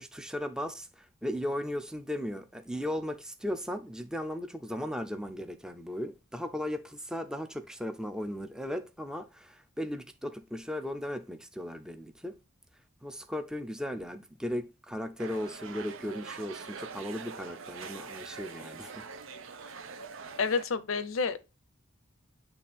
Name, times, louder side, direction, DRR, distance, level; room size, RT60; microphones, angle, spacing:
voice 1, 0.0-12.4 13.0-19.1 19.6-19.8, left 1 dB, 5° right, 0.5 m, -37 dB
sound 1, 15.2-20.7, right 5 dB, 70° right, 0.7 m, -44 dB
voice 2, 20.4-21.4, left 5 dB, 80° left, 0.6 m, -29 dB
8.1 x 3.3 x 4.2 m
head